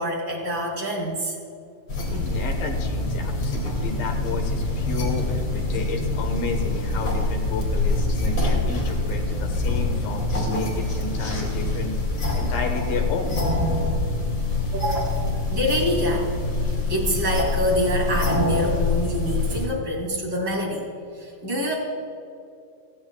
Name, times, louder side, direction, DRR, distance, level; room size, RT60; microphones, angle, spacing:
voice 1, 0.0-1.3 14.7-15.1 15.5-16.3 16.6-20.9 21.2-21.7, equal, 30° right, -3 dB, 2.3 m, -26 dB
sound 1, 1.9-19.6, left 2 dB, 35° left, 2.3 m, -25 dB
voice 2, 2.1-11.9 12.3-13.4 16.1-16.3, left 3 dB, 65° left, 3 dB, 2.5 m, -32 dB
17.5 x 15.0 x 2.3 m, 2.5 s
omnidirectional pair, 5.1 m